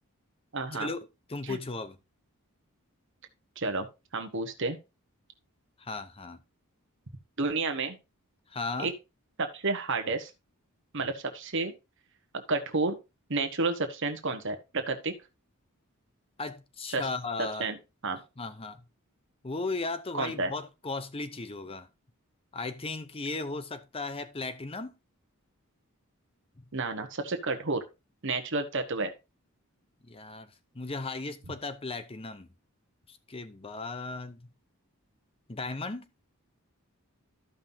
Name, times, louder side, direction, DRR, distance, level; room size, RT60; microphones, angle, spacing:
voice 1, 0.5-0.9 1.4-1.6 3.6-3.9 4.1-4.8 7.4-8.0 8.8-8.9 9.4-10.3 10.9-11.7 12.3-12.9 13.3-15.1 16.9-17.1 17.4-17.8 18.0-18.2 20.1-20.5 26.7-27.8 28.2-29.1, right 3 dB, 60° right, 1.3 m, -30 dB
voice 2, 1.3-2.0 5.8-6.4 8.5-8.9 16.4-17.7 18.4-18.8 19.4-21.9 22.5-24.9 26.6-26.7 30.0-30.5 30.7-32.5 33.1-34.5 35.5-36.1, left 3 dB, 25° left, 0.7 m, -36 dB
14.0 x 5.5 x 2.8 m
head